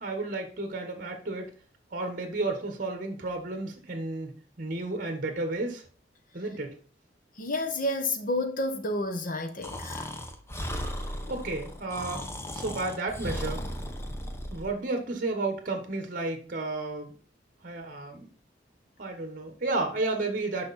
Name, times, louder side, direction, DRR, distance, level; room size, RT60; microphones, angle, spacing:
voice 1, 0.0-1.5 1.9-5.8 6.3-6.7 11.3-12.2 12.5-13.7 14.5-17.2 17.6-18.3 19.0-20.7, right 2 dB, 50° right, 1.3 m, -32 dB
voice 2, 7.4-10.1, left 1 dB, 50° left, 1.2 m, -30 dB
Breathing, 9.6-14.7, equal, 15° left, 0.9 m, -36 dB
6.3 x 5.5 x 4.2 m
head